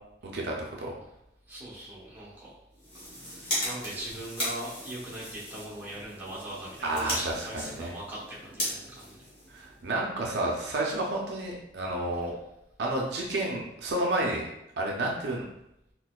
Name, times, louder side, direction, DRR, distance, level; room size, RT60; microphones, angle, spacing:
voice 1, 0.2-0.9 6.8-7.9 9.5-12.3 12.8-14.5 14.8-15.5, right 1 dB, 65° right, -2 dB, 0.5 m, -30 dB
voice 2, 1.5-2.5 2.9-9.2, right 1 dB, 10° right, -8 dB, 0.9 m, -40 dB
sound 1, 2.7-10.0, equal, 30° left, 1.3 m, -37 dB
4.0 x 2.2 x 2.3 m, 0.84 s
head